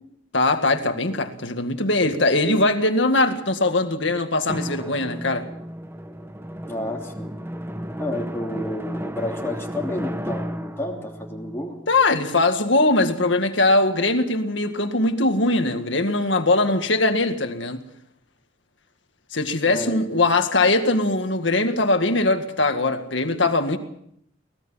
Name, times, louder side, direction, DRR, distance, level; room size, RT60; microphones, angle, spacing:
voice 1, 0.3-5.5 11.9-17.8 19.3-23.8, left 2 dB, 70° left, 2.0 m, -21 dB
Drum, 4.5-12.8, equal, 15° right, 1.0 m, -33 dB
voice 2, 6.7-7.3 8.0-11.8 19.6-20.2, left 1 dB, 15° left, 2.9 m, -31 dB
24.0 x 19.0 x 5.7 m
head